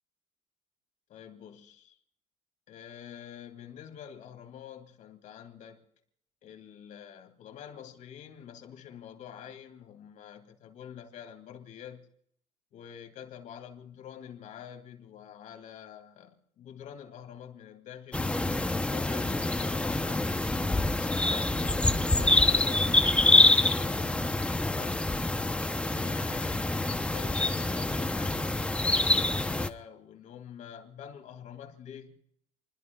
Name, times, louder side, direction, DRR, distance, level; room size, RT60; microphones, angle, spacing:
voice 1, 1.1-2.0 2.7-5.8 6.4-12.1 12.7-20.3 20.9-25.1 25.8-32.2, left 9 dB, 75° left, 2.6 m, -47 dB
sound 1, 18.1-29.7, left 2 dB, 10° left, 0.7 m, -26 dB
29.0 x 21.5 x 2.3 m
cardioid pair, 135°, 13 cm